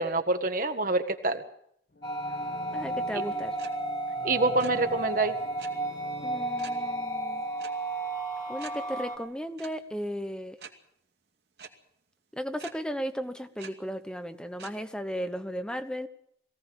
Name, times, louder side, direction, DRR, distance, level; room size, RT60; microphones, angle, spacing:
voice 1, 0.0-1.4 3.1-3.2 4.2-5.4, right 2 dB, 50° right, 7 dB, 1.6 m, -26 dB
sound 1, 1.9-8.8 9.1-9.2, left 2 dB, 60° left, 1.7 m, -47 dB
sound 2, 2.0-9.2, right 2 dB, 25° left, 2.4 m, -33 dB
voice 2, 2.7-3.5 6.2-7.4 8.5-10.6 12.3-16.1, equal, 5° left, 9 dB, 1.0 m, -35 dB
sound 3, 3.6-3.7 4.0-4.2 4.4-4.7 5.6-5.7 6.6-6.8 7.6-7.7 8.1-8.2 8.6-8.7 9.6-9.7 10.6-10.7 11.6-11.7 12.6-12.7 13.6-13.7 14.6-14.7, right 6 dB, 65° right, 2.6 m, -44 dB
22.5 x 17.0 x 7.1 m, 0.71 s
head